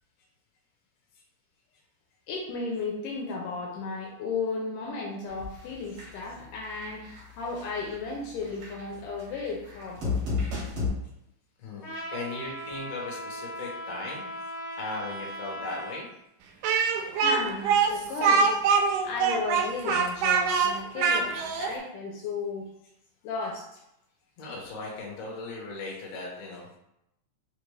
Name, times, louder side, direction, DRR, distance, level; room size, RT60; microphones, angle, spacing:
voice 1, 2.3-10.2 17.2-22.7 23.2-23.8, left 4 dB, 80° left, -2 dB, 2.1 m, -34 dB
sound 1, 5.3-5.7 6.0-6.2 6.7-7.2 7.6-8.0 8.4-10.9, left 4 dB, 65° right, 1.1 m, -32 dB
voice 2, 11.6-14.3 14.8-16.1 24.4-26.8, left 3 dB, 65° left, -2 dB, 1.7 m, -37 dB
Trumpet, 11.8-16.0, equal, 40° left, 1.2 m, -38 dB
Speech, 16.6-21.7, right 5 dB, 80° right, 2.0 m, -24 dB
5.2 x 2.5 x 3.2 m, 0.82 s
omnidirectional pair, 3.8 m